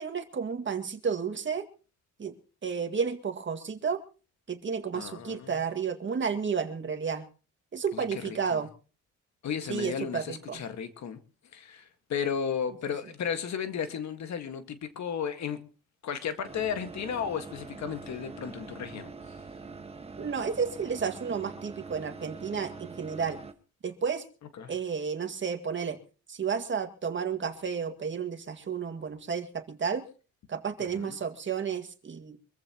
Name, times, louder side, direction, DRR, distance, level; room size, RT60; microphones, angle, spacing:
voice 1, 0.0-1.7 2.2-2.3 2.6-4.0 4.5-7.2 7.7-8.7 9.7-10.6 20.2-23.4 23.8-24.2 24.7-26.0 26.3-30.1 30.5-32.4, right 6 dB, 40° right, 2.1 m, -32 dB
voice 2, 4.9-5.5 7.9-8.6 9.4-11.2 11.5-15.6 16.0-19.3 24.6-24.7 30.8-31.2, left 7 dB, 65° left, 1.8 m, -34 dB
sound 1, 16.4-23.5, right 4 dB, 20° right, 1.6 m, -44 dB
25.0 x 14.5 x 3.0 m
cardioid pair, 90°, 30 cm